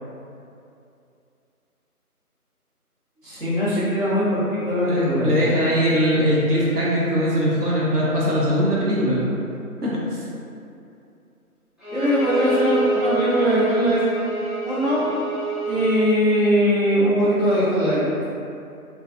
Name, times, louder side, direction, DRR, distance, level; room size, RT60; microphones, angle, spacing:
voice 1, 3.2-5.3 11.9-14.0 14.6-15.0 15.6-18.2, equal, 60° right, -11 dB, 1.2 m, -20 dB
voice 2, 4.8-9.3 9.8-10.2, equal, 90° right, -7 dB, 0.9 m, -21 dB
Bowed string instrument, 11.8-16.0, right 2 dB, ahead, 0.5 m, -27 dB
2.7 x 2.4 x 2.4 m, 2.6 s
figure-of-eight pair, 175°, 45 cm